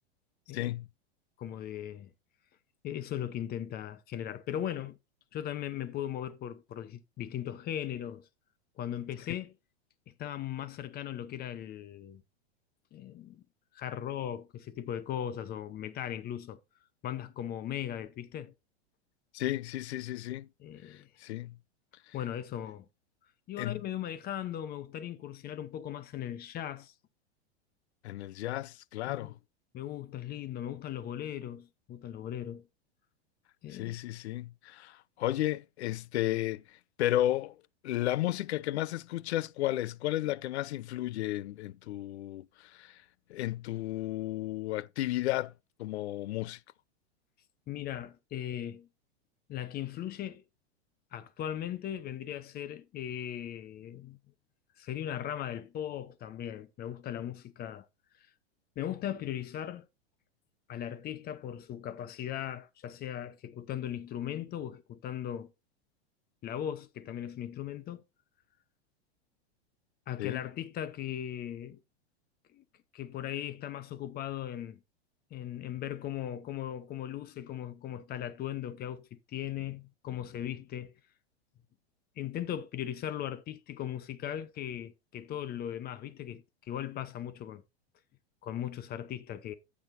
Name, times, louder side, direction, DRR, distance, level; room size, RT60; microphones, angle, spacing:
voice 1, 0.5-0.9 19.3-20.5 20.8-21.6 22.1-22.2 23.6-23.8 28.0-29.3 33.7-43.0 43.3-45.5 45.8-46.6 70.2-70.4, left 15 dB, 75° left, 0.6 m, -33 dB
voice 2, 1.4-2.1 2.8-5.0 5.3-8.3 8.8-9.5 10.2-12.2 12.9-13.4 13.7-16.6 17.0-18.5 20.6-21.1 22.1-22.9 23.5-26.9 29.1-29.3 29.7-32.7 33.6-34.0 47.7-48.9 49.5-50.4 51.1-54.2 54.8-57.8 58.8-59.9 60.7-65.5 66.4-68.0 70.1-71.8 72.5-72.6 72.9-74.8 75.3-80.9 82.2-87.6 88.4-89.5, left 10 dB, 30° left, 0.9 m, -38 dB
14.5 x 6.2 x 2.6 m
hypercardioid pair, 125°, 33 cm